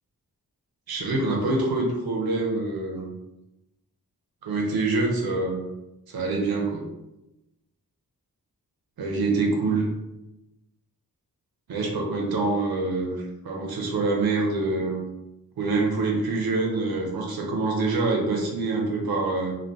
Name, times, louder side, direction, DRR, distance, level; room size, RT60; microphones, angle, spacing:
voice 1, 0.9-3.1 4.4-5.6 6.1-6.9 9.0-9.9 11.7-15.0 15.6-19.5, right 3 dB, 80° right, 0 dB, 0.7 m, -25 dB
2.3 x 2.1 x 2.6 m, 0.94 s
cardioid pair, 60°, 36 cm